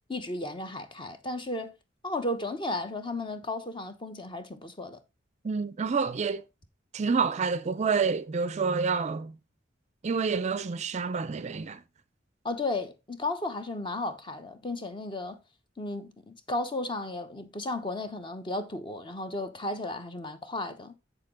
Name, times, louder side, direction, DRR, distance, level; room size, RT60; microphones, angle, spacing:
voice 1, 0.1-1.7 2.0-5.0 12.4-15.4 15.8-20.9, left 2 dB, 25° left, 0.9 m, -34 dB
voice 2, 5.4-6.4 6.9-9.3 10.0-11.8, right 5 dB, 35° right, 0.4 m, -28 dB
7.8 x 6.7 x 3.7 m
head